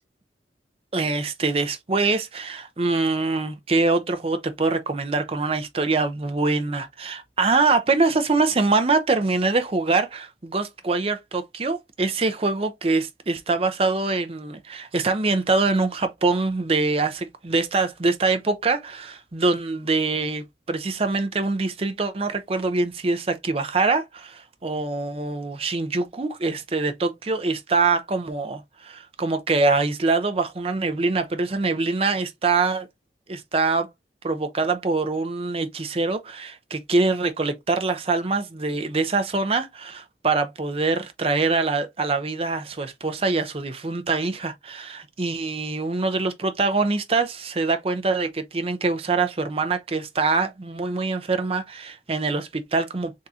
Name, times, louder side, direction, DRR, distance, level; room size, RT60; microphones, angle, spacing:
voice 1, 0.9-32.9 33.3-33.9 34.2-53.1, right 3 dB, 30° right, 0.6 m, -24 dB
3.7 x 3.7 x 2.7 m
head